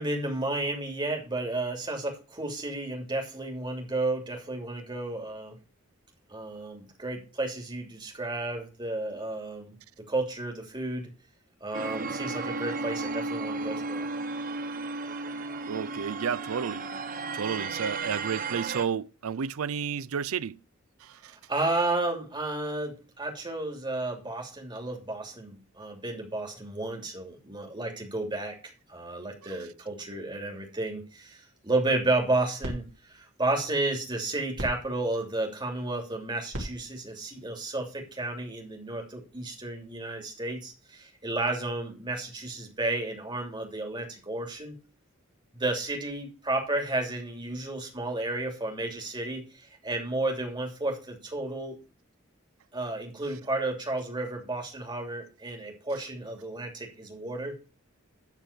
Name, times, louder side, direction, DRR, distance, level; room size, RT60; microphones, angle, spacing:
voice 1, 0.0-5.6 6.3-9.7 10.1-11.1 11.6-14.1 21.5-44.7 45.5-51.8 52.7-57.6, right 2 dB, 20° right, 2.8 m, -32 dB
sound 1, 11.7-18.8, right 3 dB, 40° right, 1.0 m, -34 dB
voice 2, 15.7-16.9 17.3-20.6 21.0-21.3, right 7 dB, 80° right, 0.5 m, -31 dB
sound 2, 32.0-38.5, equal, 65° right, 3.4 m, -43 dB
13.0 x 4.5 x 6.6 m
head